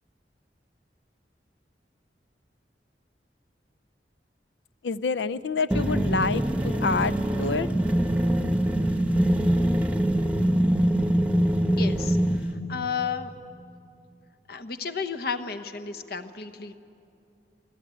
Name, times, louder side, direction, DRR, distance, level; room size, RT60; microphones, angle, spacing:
voice 1, 4.8-7.7, left 4 dB, 80° left, 16 dB, 0.5 m, -27 dB
sound 1, 5.7-12.5, right 1 dB, 10° right, 0.9 m, -23 dB
voice 2, 11.8-13.3 14.5-16.9, left 5 dB, 60° left, 11 dB, 1.0 m, -33 dB
24.0 x 15.5 x 9.1 m, 2.8 s
head